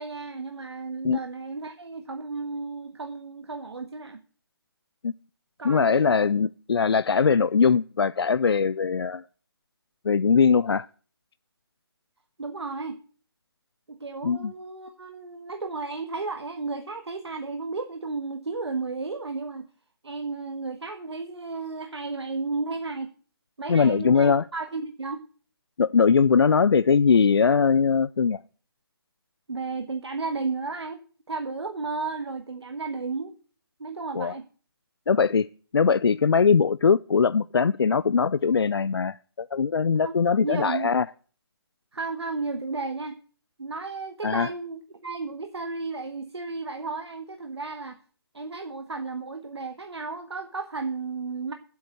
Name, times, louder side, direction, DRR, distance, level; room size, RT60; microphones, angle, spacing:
voice 1, 0.0-4.2 5.6-6.2 12.4-13.0 13.9-19.6 20.0-23.1 23.6-25.2 29.5-31.0 31.3-33.3 33.8-34.4 40.0-40.9 41.9-43.2 43.6-48.0 48.3-51.5, right 3 dB, 85° right, 1.6 m, -33 dB
voice 2, 5.6-9.2 10.0-10.9 14.2-14.5 23.7-24.4 25.8-28.4 34.1-34.3 35.1-35.5 35.7-41.0 44.2-44.5, left 5 dB, 70° left, 0.4 m, -21 dB
8.4 x 7.9 x 9.0 m
hypercardioid pair, 175°, 14 cm